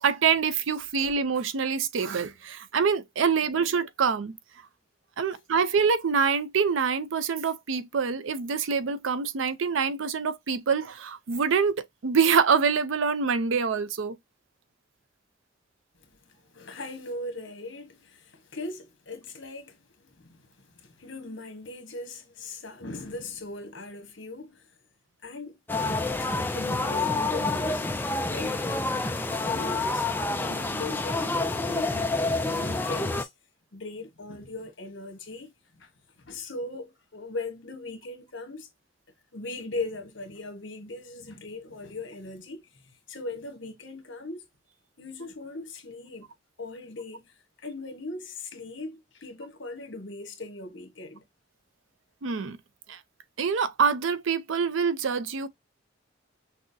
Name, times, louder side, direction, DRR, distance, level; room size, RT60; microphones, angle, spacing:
voice 1, 0.0-4.4 5.2-14.2 52.2-52.6 52.9-53.0 53.4-55.5, right 6 dB, 85° right, 0.5 m, -25 dB
voice 2, 16.3-24.7 25.2-25.6 25.8-28.6 29.3-33.3 33.7-35.5 35.8-35.9 36.2-38.7 39.3-44.4 45.0-46.3 46.6-51.2, left 2 dB, 70° left, 1.1 m, -39 dB
sound 1, 25.7-33.2, left 3 dB, 10° left, 0.3 m, -28 dB
5.9 x 2.0 x 2.6 m
head